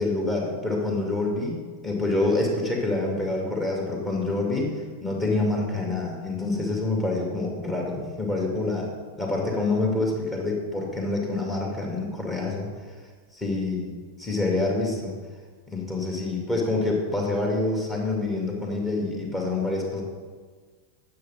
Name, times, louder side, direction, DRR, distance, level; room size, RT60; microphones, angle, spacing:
voice 1, 0.0-4.7 5.0-8.9 9.2-12.7 13.3-13.9 14.2-15.2 15.7-20.0, left 2 dB, 15° left, -1 dB, 2.3 m, -26 dB
9.3 x 7.1 x 5.4 m, 1.5 s
figure-of-eight pair, 90°, 0 cm